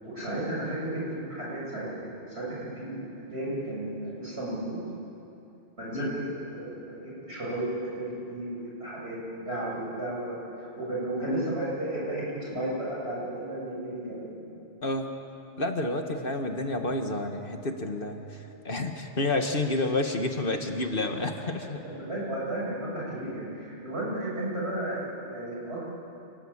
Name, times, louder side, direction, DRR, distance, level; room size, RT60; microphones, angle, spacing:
voice 1, 0.0-3.0 3.3-4.8 5.8-7.7 7.9-14.4 16.0-16.2 21.8-25.9, right 1 dB, 75° right, -5 dB, 8.5 m, -33 dB
voice 2, 5.9-6.3 14.8-15.1 15.6-18.4 18.6-21.8, left 2 dB, 55° left, 4 dB, 1.9 m, -29 dB
28.5 x 20.0 x 8.9 m, 2.8 s
omnidirectional pair, 1.1 m